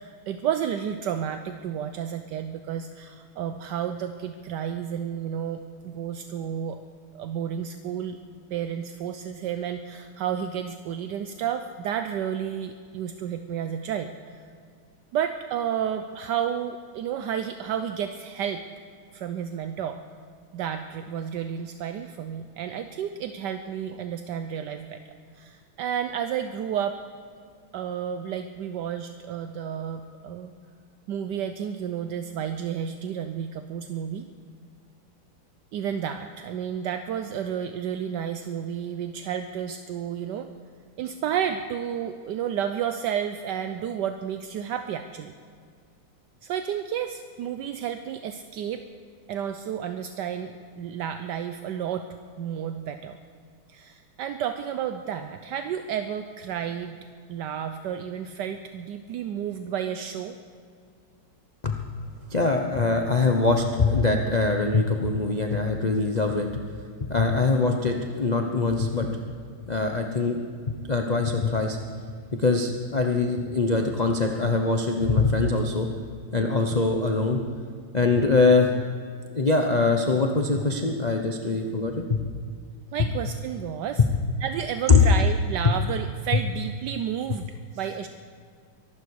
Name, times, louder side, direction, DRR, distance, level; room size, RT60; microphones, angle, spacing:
voice 1, 0.0-6.8 7.1-8.2 8.5-14.4 15.1-18.6 19.1-20.0 20.5-25.0 25.4-27.0 27.7-30.5 31.1-34.3 35.7-40.5 41.0-45.3 46.4-48.8 49.3-52.1 52.4-53.2 53.7-57.0 57.3-60.4 82.9-84.0 84.4-87.5 87.7-88.1, right 9 dB, 75° right, 8 dB, 1.0 m, -31 dB
voice 2, 62.3-66.6 67.0-69.2 69.7-70.4 70.7-71.8 72.4-75.9 76.3-77.5 77.9-78.7 79.3-82.3 84.0-84.1 85.6-85.7, left 3 dB, 70° left, 2 dB, 0.4 m, -23 dB
23.5 x 12.0 x 4.8 m, 2.2 s
omnidirectional pair, 2.4 m